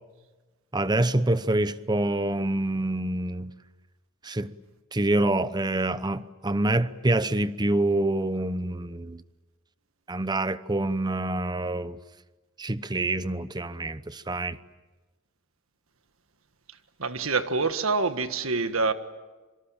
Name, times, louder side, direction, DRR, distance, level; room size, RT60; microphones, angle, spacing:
voice 1, 0.7-3.5 4.2-4.5 4.9-9.2 10.1-12.0 12.6-14.6, right 2 dB, 20° right, 0.8 m, -26 dB
voice 2, 17.0-18.9, right 4 dB, 80° right, 1.7 m, -26 dB
26.5 x 25.0 x 8.9 m
head